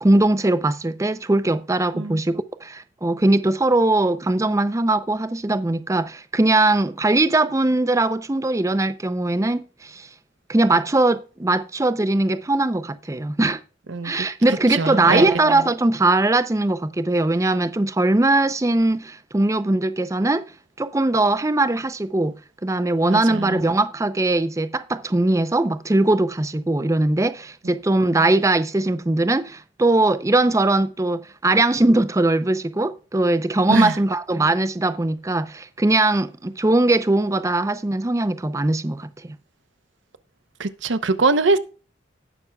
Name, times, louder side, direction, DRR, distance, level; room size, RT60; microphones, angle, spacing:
voice 1, 0.0-10.1 10.5-13.6 14.0-20.4 20.8-22.3 22.6-39.4, right 2 dB, 15° right, 0.5 m, -20 dB
voice 2, 13.9-14.3 14.7-15.7 23.1-23.6 28.1-28.3 33.7-33.9 40.6-41.6, right 3 dB, 75° right, 0.8 m, -23 dB
18.0 x 6.1 x 2.3 m
head